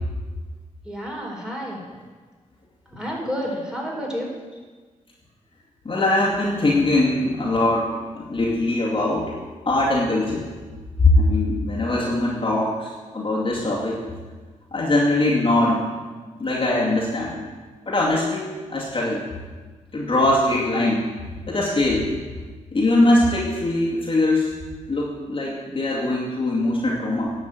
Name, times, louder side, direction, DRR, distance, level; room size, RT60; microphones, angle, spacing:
voice 1, 0.8-1.8 2.9-4.4, equal, 5° right, -3 dB, 4.4 m, -30 dB
voice 2, 5.8-9.4 9.7-10.4 11.0-14.1 14.7-15.9 16.4-17.4 17.9-19.2 19.9-21.0 21.5-22.1 22.7-24.5 24.9-27.3, left 2 dB, 40° left, -5 dB, 2.4 m, -21 dB
10.5 x 6.4 x 7.8 m, 1.4 s
cardioid pair, 65°, 14 cm